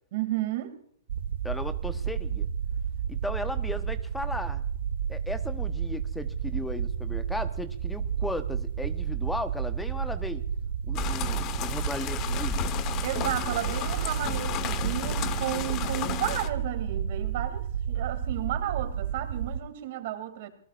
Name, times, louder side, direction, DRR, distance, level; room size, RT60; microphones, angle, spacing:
voice 1, 0.1-0.8 13.0-20.5, right 13 dB, 50° right, 8 dB, 2.5 m, -33 dB
sound 1, 1.1-19.6, right 8 dB, 70° right, 1.2 m, -31 dB
voice 2, 1.4-2.5 3.1-4.6 5.1-10.4 10.9-12.7, left 2 dB, 5° left, 10 dB, 0.9 m, -36 dB
sound 2, 10.9-16.5, left 11 dB, 30° left, 1.1 m, -33 dB
26.5 x 18.5 x 2.5 m, 0.63 s
hypercardioid pair, 145°, 0 cm